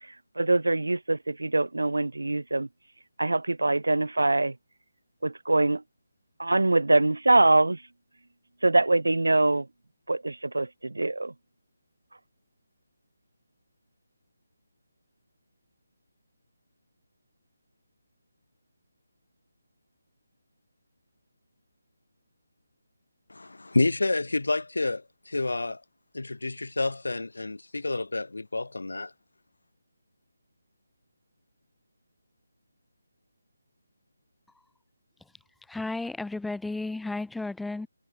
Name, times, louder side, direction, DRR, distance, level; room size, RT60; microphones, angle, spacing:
voice 1, 0.0-2.7 3.2-4.5 5.2-5.8 6.4-7.8 8.6-9.7 10.1-11.3, right 2 dB, 80° right, 1.3 m, -24 dB
voice 2, 23.3-25.8 26.1-29.1, left 2 dB, 75° left, 0.9 m, -29 dB
voice 3, 35.7-37.9, left 2 dB, ahead, 1.2 m, -33 dB
figure-of-eight pair, 155°, 0 cm